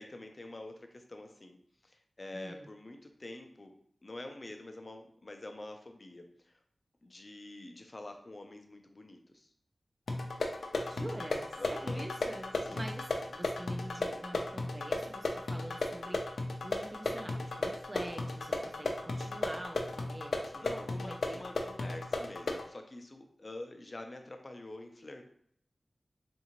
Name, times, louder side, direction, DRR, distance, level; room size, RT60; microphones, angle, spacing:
voice 1, 0.0-3.7 4.0-6.5 7.0-9.5 11.6-12.1 12.7-12.8 20.6-25.2, left 2 dB, 45° left, 5 dB, 0.6 m, -47 dB
voice 2, 2.3-2.7 10.9-16.2 16.6-20.6 21.0-21.5, right 1 dB, 30° right, 3 dB, 0.4 m, -45 dB
sound 1, 10.1-22.7, left 2 dB, 90° left, 0.4 m, -35 dB
3.7 x 2.6 x 2.9 m, 0.66 s
cardioid pair, 50°, 0 cm